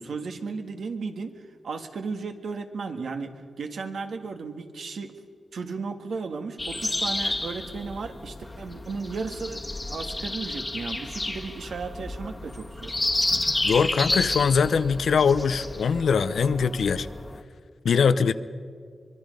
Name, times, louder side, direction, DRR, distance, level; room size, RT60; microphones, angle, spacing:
voice 1, 0.0-1.3 1.6-5.2 5.5-12.9, right 4 dB, 80° right, 6 dB, 1.7 m, -35 dB
sound 1, 6.6-17.4, left 2 dB, 25° left, 1.4 m, -31 dB
voice 2, 13.6-17.1 17.8-18.3, left 6 dB, 80° left, 13 dB, 0.7 m, -22 dB
24.5 x 22.0 x 5.3 m, 2.2 s
cardioid pair, 80°, 0 cm